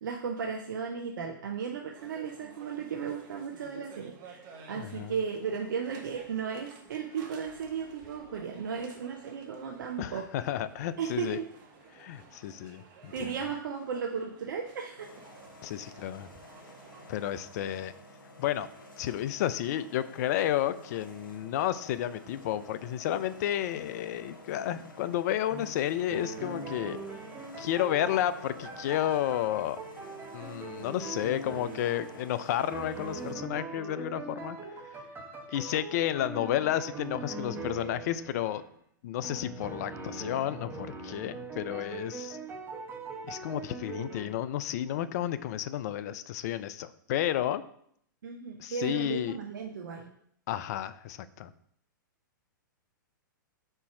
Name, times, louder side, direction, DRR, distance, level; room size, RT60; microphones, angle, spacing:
voice 1, 0.0-10.3 11.0-11.5 13.1-15.1 34.6-34.7 48.2-50.1, right 6 dB, 65° right, 2 dB, 0.7 m, -35 dB
sound 1, 1.9-17.3, right 4 dB, 40° right, 1.2 m, -53 dB
voice 2, 4.8-5.1 10.0-11.4 11.9-13.3 15.6-16.3 17.1-17.9 18.4-18.7 19.0-27.0 27.6-29.8 30.3-34.6 35.5-38.6 39.0-42.4 43.3-47.6 48.6-49.4 50.5-51.5, left 12 dB, 50° left, 14 dB, 0.4 m, -31 dB
sound 2, 15.0-33.3, left 1 dB, 85° left, 1.8 m, -51 dB
sound 3, 25.5-25.8 26.1-32.4 32.7-38.7 39.2-44.3, right 3 dB, 20° right, 1.2 m, -41 dB
4.5 x 4.2 x 5.8 m, 0.68 s
hypercardioid pair, 115°, 11 cm